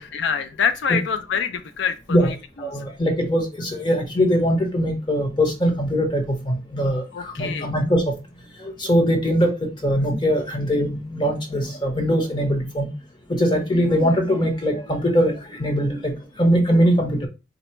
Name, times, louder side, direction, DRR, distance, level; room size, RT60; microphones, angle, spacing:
voice 1, 0.0-2.4 2.7-2.9 7.1-7.7 17.2-17.3, left 7 dB, 85° left, 10 dB, 0.4 m, -26 dB
voice 2, 2.6-8.1 8.6-9.5 9.8-12.9 13.3-17.2, equal, 25° left, 2 dB, 1.0 m, -21 dB
3.9 x 2.1 x 4.4 m, 0.27 s
head